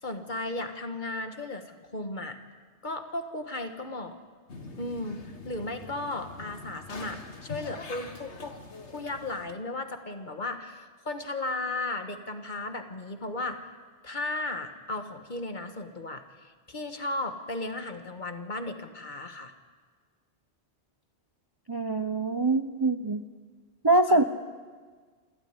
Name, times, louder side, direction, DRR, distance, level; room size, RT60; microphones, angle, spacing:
voice 1, 0.0-2.4 2.8-4.1 4.8-8.6 8.9-13.7 14.0-19.5 24.1-24.2, left 2 dB, 45° left, 7 dB, 1.6 m, -35 dB
sound 1, 4.5-9.5, left 3 dB, 80° left, 2.1 m, -44 dB
voice 2, 21.7-23.2 23.8-24.2, right 2 dB, 25° right, 9 dB, 0.6 m, -24 dB
27.5 x 13.0 x 9.8 m, 1.5 s
omnidirectional pair, 1.2 m